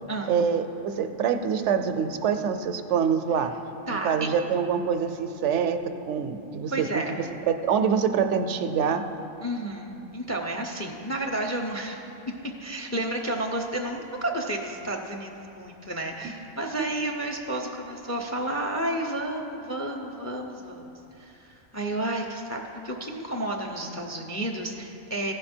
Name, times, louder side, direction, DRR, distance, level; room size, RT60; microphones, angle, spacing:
voice 1, 0.3-3.5 4.0-5.8 6.1-7.2 7.5-9.0, right 7 dB, 80° right, 8 dB, 0.9 m, -25 dB
voice 2, 3.9-4.3 6.7-7.1 9.4-12.0 12.6-25.3, right 1 dB, 20° left, 2 dB, 0.4 m, -31 dB
15.5 x 5.4 x 4.4 m, 2.8 s
omnidirectional pair, 1.2 m